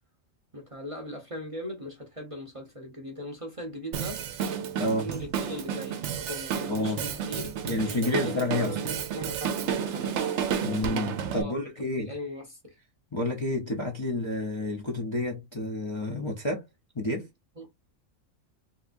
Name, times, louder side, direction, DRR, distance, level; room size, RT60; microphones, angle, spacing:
voice 1, 0.5-4.2 4.8-7.5 7.8-10.3 11.3-12.7 17.6-17.7, equal, 30° right, 0.8 m, -39 dB
Drum kit, 3.9-11.4, right 8 dB, 65° right, 0.9 m, -31 dB
voice 2, 4.6-5.1 6.7-7.0 7.6-8.8 10.6-12.1 13.1-16.7 16.9-17.3, left 2 dB, 30° left, 0.6 m, -30 dB
3.4 x 2.8 x 2.5 m
omnidirectional pair, 1.3 m